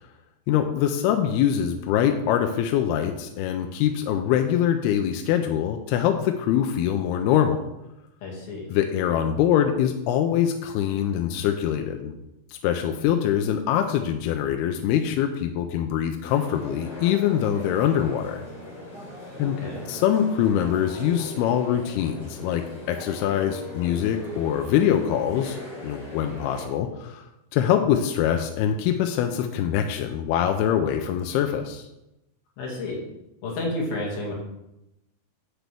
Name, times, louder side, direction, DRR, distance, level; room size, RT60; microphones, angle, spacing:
voice 1, 0.5-7.6 8.7-12.1 12.5-18.4 19.4-19.6 19.9-25.6 25.8-27.3 27.5-31.9, left 10 dB, 85° left, 5 dB, 2.6 m, -24 dB
voice 2, 8.2-8.6 19.4-19.9 32.6-33.0 33.4-34.3, left 2 dB, 65° left, -3 dB, 4.0 m, -31 dB
sound 1, 16.2-26.7, left 1 dB, 30° left, 4.5 m, -39 dB
10.0 x 8.2 x 3.5 m, 0.89 s
omnidirectional pair, 4.6 m